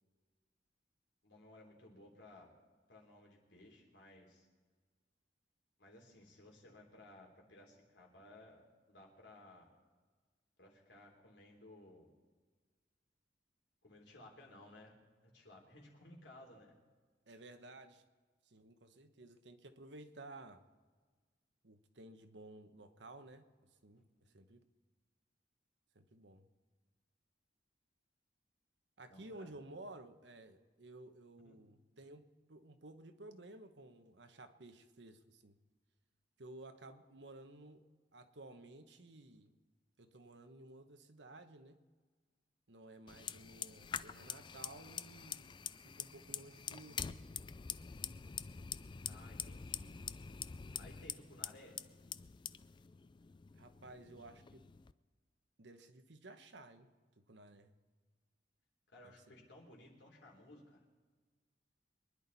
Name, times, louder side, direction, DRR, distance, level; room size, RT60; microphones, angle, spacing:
voice 1, 1.2-2.5 2.9-4.5 5.8-9.7 10.6-12.1 13.8-15.0 15.2-16.7 24.0-24.3 29.1-29.5 31.4-31.6 49.1-50.0 50.8-51.8 58.9-60.8, left 1 dB, 85° left, -1 dB, 3.6 m, -58 dB
voice 2, 17.3-18.0 18.4-20.6 21.6-24.6 25.9-26.5 29.0-35.6 36.4-37.8 38.1-39.6 40.0-41.8 42.7-45.6 45.8-47.2 53.6-54.6 55.6-56.9 57.2-57.7 59.0-59.5, right 2 dB, 80° right, 8 dB, 1.2 m, -55 dB
Fire, 43.1-54.9, left 7 dB, 25° left, 0.3 m, -46 dB
24.0 x 11.0 x 4.1 m, 1.4 s
head